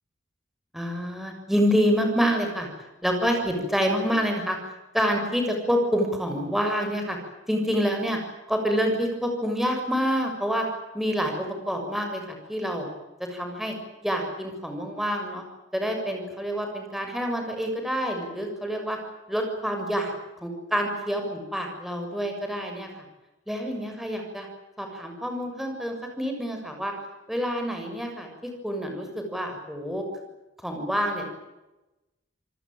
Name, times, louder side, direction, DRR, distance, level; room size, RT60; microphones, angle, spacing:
voice 1, 0.7-2.7 3.0-4.6 4.9-7.2 7.5-8.2 8.5-10.7 10.9-12.9 13.3-13.7 14.0-15.4 15.7-19.0 19.3-20.1 20.4-23.0 23.5-24.5 24.8-26.9 27.3-30.0 30.6-31.3, equal, ahead, 3 dB, 6.8 m, -27 dB
28.0 x 20.0 x 9.3 m, 1.0 s
head